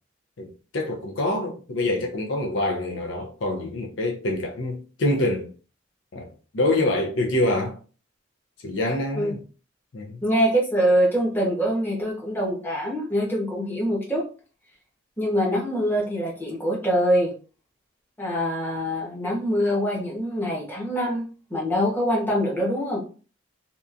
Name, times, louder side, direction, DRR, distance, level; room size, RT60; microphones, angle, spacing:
voice 1, 0.4-5.5 6.1-6.3 6.5-7.8 8.6-9.4 9.9-10.2, left 1 dB, 70° left, 0.6 m, -26 dB
voice 2, 10.2-14.2 15.2-17.3 18.2-23.0, equal, 10° left, 0.8 m, -24 dB
2.8 x 2.3 x 2.4 m
head